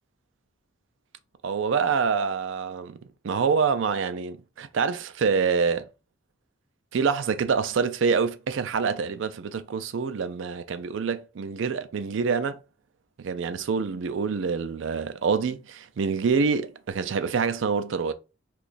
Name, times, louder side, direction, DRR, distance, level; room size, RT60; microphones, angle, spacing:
voice 1, 1.4-3.0 3.2-5.8 6.9-12.6 13.2-18.1, right 5 dB, 65° right, 0.4 m, -26 dB
2.9 x 2.4 x 4.0 m
head